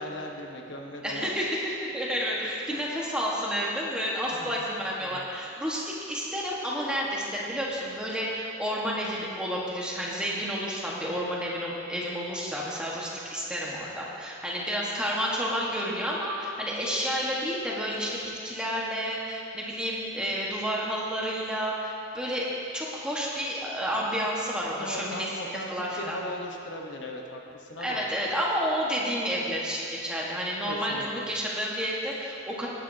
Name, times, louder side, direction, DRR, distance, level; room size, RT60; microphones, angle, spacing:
voice 1, 0.0-1.3 2.7-2.8 4.3-4.7 5.0-5.2 24.8-28.0 30.7-31.3, left 1 dB, 65° left, 1 dB, 1.0 m, -38 dB
voice 2, 1.0-22.5 22.7-25.3 25.7-26.2 27.8-32.7, equal, 5° right, -5 dB, 1.3 m, -30 dB
17.5 x 10.0 x 2.8 m, 2.7 s
head